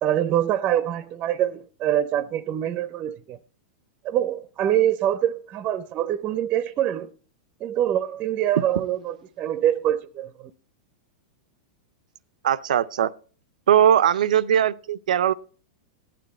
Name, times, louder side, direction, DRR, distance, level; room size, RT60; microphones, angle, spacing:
voice 1, 0.0-3.4 4.0-7.1 7.6-10.5, right 11 dB, 30° right, 0.6 m, -25 dB
voice 2, 12.4-13.1 13.7-15.3, right 10 dB, 85° right, 0.6 m, -20 dB
16.0 x 9.3 x 4.2 m
supercardioid pair, 140°, 4 cm